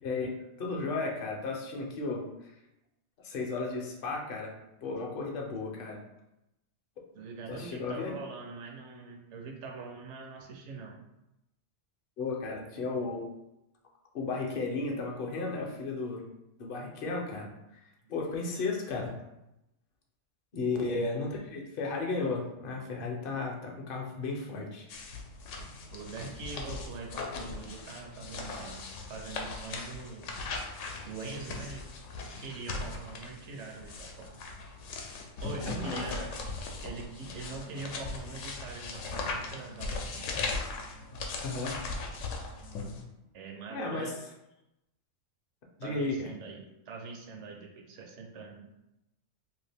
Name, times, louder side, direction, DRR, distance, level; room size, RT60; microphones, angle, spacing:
voice 1, 0.0-2.3 3.2-6.0 7.5-8.1 12.2-13.2 14.1-16.2 16.6-17.5 18.1-19.1 20.5-24.9 35.6-36.0 41.4-41.8 43.7-44.1 45.8-46.3, left 3 dB, 55° left, 0 dB, 0.7 m, -34 dB
voice 2, 7.1-11.0 20.7-21.2 25.9-30.3 31.0-31.8 32.1-34.4 35.4-36.3 36.8-40.4 43.3-44.2 45.8-48.7, right 4 dB, 70° right, 2 dB, 0.9 m, -43 dB
sound 1, 24.9-43.0, left 3 dB, 80° left, 0.9 m, -39 dB
2.8 x 2.4 x 3.3 m, 0.90 s
omnidirectional pair, 1.3 m